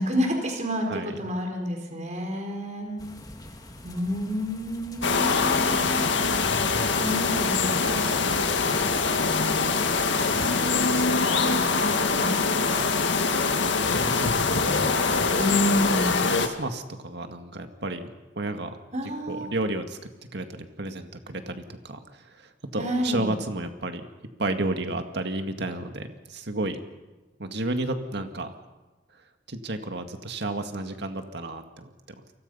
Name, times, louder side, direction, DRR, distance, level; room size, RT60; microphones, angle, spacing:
voice 1, 0.0-3.1 3.8-6.1 6.9-11.6 11.9-12.9 14.7-15.0 15.4-16.2 18.9-19.5 22.8-23.4, equal, 40° right, 2 dB, 4.5 m, -31 dB
sound 1, 3.0-10.6, left 1 dB, 20° left, 2.4 m, -44 dB
sound 2, 5.0-16.5, left 4 dB, 80° left, 1.9 m, -24 dB
voice 2, 13.9-15.3 16.0-16.1 16.3-18.8 19.3-20.0 20.3-24.1 24.4-26.8 27.4-28.5 29.1-29.2 29.5-32.2, right 2 dB, 65° right, 6 dB, 2.0 m, -32 dB
30.0 x 23.5 x 5.6 m, 1.2 s
head